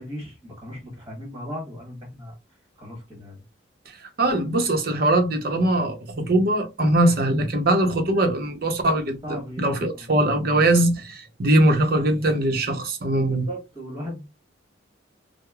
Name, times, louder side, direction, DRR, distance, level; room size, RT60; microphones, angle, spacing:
voice 1, 0.0-2.3 2.8-3.4 9.2-9.7 9.9-10.1 13.5-14.3, equal, 15° right, 1.4 m, -36 dB
voice 2, 3.9-13.5, right 1 dB, 50° right, 0.8 m, -21 dB
4.7 x 2.1 x 2.3 m
head